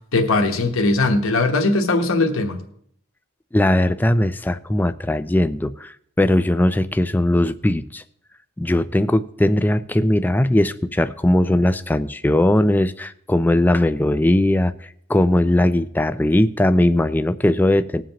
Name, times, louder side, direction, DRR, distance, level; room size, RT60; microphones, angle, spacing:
voice 1, 0.1-2.6, left 2 dB, 80° left, 1.2 m, -19 dB
voice 2, 3.5-8.0 8.6-18.0, left 1 dB, 10° left, 0.3 m, -19 dB
19.5 x 7.4 x 3.0 m
head